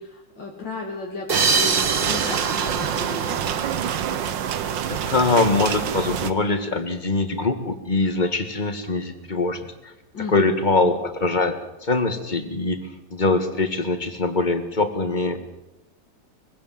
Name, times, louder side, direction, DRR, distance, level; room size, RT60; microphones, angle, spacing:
voice 1, 0.0-3.4 10.1-10.5, left 3 dB, 90° left, -3 dB, 3.3 m, -34 dB
sound 1, 1.3-4.4, right 4 dB, 35° right, 1.2 m, -26 dB
sound 2, 1.3-6.3, right 9 dB, 90° right, 1.7 m, -26 dB
voice 2, 4.7-9.9 10.3-11.6 11.8-12.8 13.1-15.4, left 3 dB, 25° left, 8 dB, 1.9 m, -23 dB
22.5 x 16.5 x 7.6 m, 0.95 s
omnidirectional pair, 1.9 m